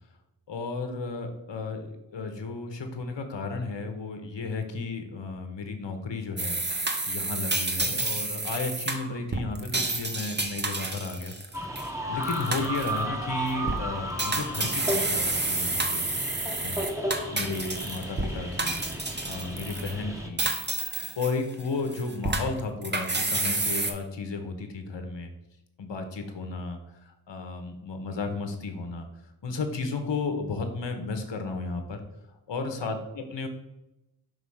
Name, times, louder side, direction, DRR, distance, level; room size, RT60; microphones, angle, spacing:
voice 1, 0.5-6.6 7.1-11.3 12.1-16.0 16.6-16.8 17.3-18.8 19.3-20.4 21.1-25.3 25.8-26.8 27.1-29.1 29.4-32.0 32.5-33.5, left 3 dB, 65° left, 6 dB, 1.1 m, -33 dB
sound 1, 6.4-11.9 12.2-13.0 13.5-13.8 14.2-18.3 18.6-19.9 20.4-21.6 21.9-23.9, right 2 dB, 20° right, 0.9 m, -30 dB
sound 2, 11.5-20.3, right 1 dB, 5° right, 1.2 m, -34 dB
5.5 x 3.2 x 5.5 m, 0.89 s
cardioid pair, 40°, 47 cm